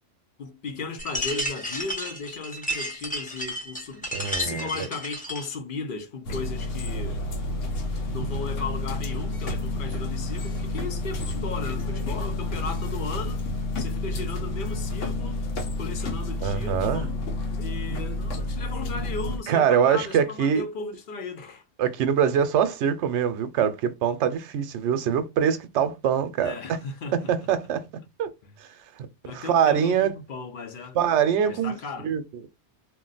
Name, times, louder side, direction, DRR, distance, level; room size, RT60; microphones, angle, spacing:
voice 1, 0.4-4.1 4.4-7.2 7.9-13.4 13.8-15.5 15.7-17.2 17.6-21.6 26.4-27.3 29.2-31.0 31.4-32.1, left 4 dB, 55° left, 0.7 m, -36 dB
sound 1, 1.0-5.6, equal, 10° left, 0.5 m, -32 dB
voice 2, 4.1-4.9 16.4-17.1 19.5-20.6 21.8-26.8 27.1-27.8 28.2-28.3 29.3-30.1 30.9-32.2, right 8 dB, 75° right, 0.9 m, -24 dB
sound 2, 6.2-19.4, left 2 dB, 80° left, 1.1 m, -30 dB
2.4 x 2.2 x 3.9 m
omnidirectional pair, 1.3 m